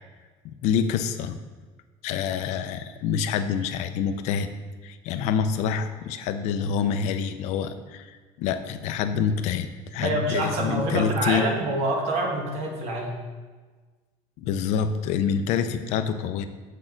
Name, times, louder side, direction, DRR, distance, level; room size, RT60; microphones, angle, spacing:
voice 1, 0.6-1.4 2.0-4.5 4.8-11.5 14.4-16.4, left 7 dB, 70° left, 9 dB, 0.6 m, -26 dB
voice 2, 10.0-13.2, right 2 dB, 65° right, 1 dB, 1.6 m, -26 dB
7.5 x 6.3 x 3.9 m, 1.4 s
cardioid pair, 140°, 12 cm